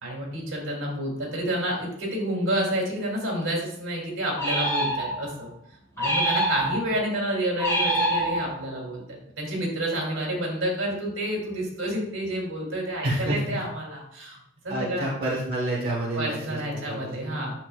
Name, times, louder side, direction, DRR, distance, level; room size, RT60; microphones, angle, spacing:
voice 1, 0.0-5.5 6.0-14.4 14.6-15.1 16.1-17.5, right 1 dB, 90° right, -1 dB, 3.0 m, -29 dB
sound 1, 4.4-5.4 6.0-7.0 7.6-8.8, right 1 dB, 15° left, 2.5 m, -26 dB
voice 2, 13.0-13.6 14.7-17.5, right 1 dB, 45° right, -4 dB, 1.4 m, -29 dB
9.3 x 6.8 x 2.4 m, 0.71 s
head